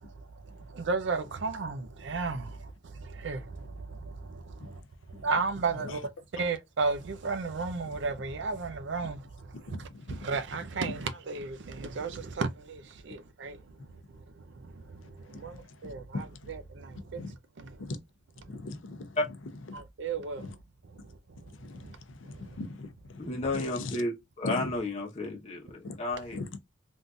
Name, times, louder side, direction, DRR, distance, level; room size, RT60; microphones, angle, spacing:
voice 1, 0.0-4.8 5.1-17.9 18.4-18.5 19.7-20.6 20.8-22.0 22.2-22.6, right 4 dB, 65° right, 0.5 m, -35 dB
voice 2, 9.7-10.3 15.5-15.6 15.8-16.3 17.1-17.3 17.8-18.0 18.5-19.2 19.7-19.8 20.4-20.5 21.6-24.0 24.4-24.7 25.8-26.0 26.3-26.6, left 3 dB, 85° left, 0.6 m, -39 dB
voice 3, 23.2-26.4, left 2 dB, 35° left, 0.9 m, -32 dB
3.6 x 2.6 x 2.4 m
head